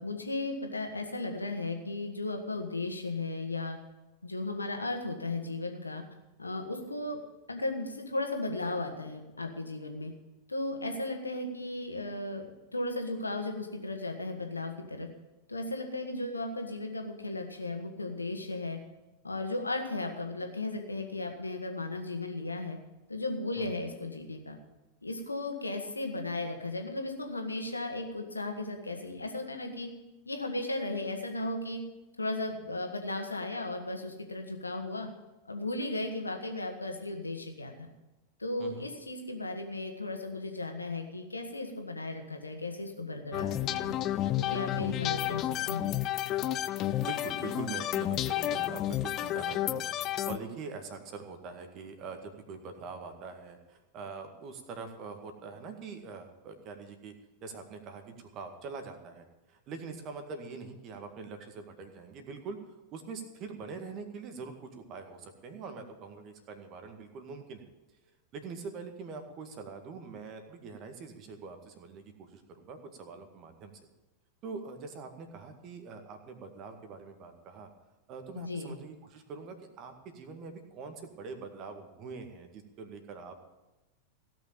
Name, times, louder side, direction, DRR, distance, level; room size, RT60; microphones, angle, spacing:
voice 1, 0.0-3.8 4.2-6.0 6.4-7.2 7.5-10.1 10.5-15.1 15.5-18.8 19.2-22.8 23.1-24.6 25.0-29.9 30.3-31.8 32.2-35.1 35.5-37.7 38.4-43.9 44.4-45.9 78.4-78.8, left 2 dB, 80° left, 4 dB, 1.8 m, -35 dB
sound 1, 43.3-50.4, left 13 dB, 35° left, 0.4 m, -31 dB
voice 2, 47.0-49.8 50.3-57.2 57.4-62.6 62.9-67.6 68.3-73.7 74.4-77.7 78.1-83.4, right 4 dB, 35° right, 6 dB, 1.9 m, -44 dB
16.5 x 6.2 x 9.0 m, 1.1 s
figure-of-eight pair, 90°, 0 cm